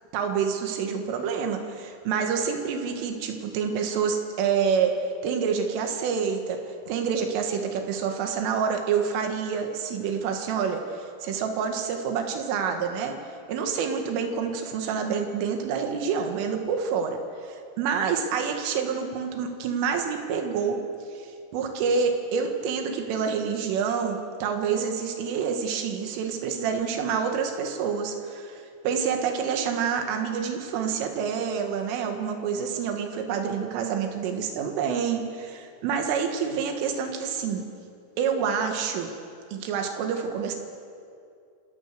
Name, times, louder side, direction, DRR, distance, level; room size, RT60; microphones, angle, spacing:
voice 1, 0.1-4.9 5.2-6.6 6.9-13.2 13.5-17.2 17.4-20.8 21.2-37.6 38.2-39.1 39.5-40.6, right 6 dB, 85° right, 4 dB, 4.2 m, -27 dB
28.5 x 15.5 x 6.7 m, 2.4 s
omnidirectional pair, 5.6 m